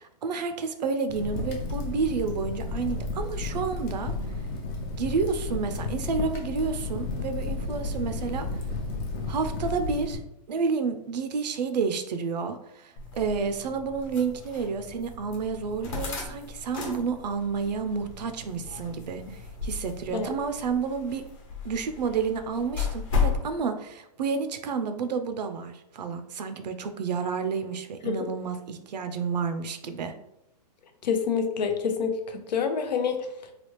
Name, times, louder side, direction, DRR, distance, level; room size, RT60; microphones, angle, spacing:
voice 1, 0.0-4.1 5.0-8.5 9.3-10.2 10.5-21.2 21.6-30.1, right 5 dB, 80° right, 8 dB, 0.5 m, -30 dB
Crackle, 1.1-10.2, left 3 dB, 25° left, 0.4 m, -32 dB
sound 1, 13.0-23.4, left 5 dB, 50° left, 1.0 m, -34 dB
voice 2, 31.0-33.3, left 6 dB, 85° left, 6 dB, 0.6 m, -27 dB
3.3 x 2.3 x 3.0 m, 0.82 s
hypercardioid pair, 145°, 21 cm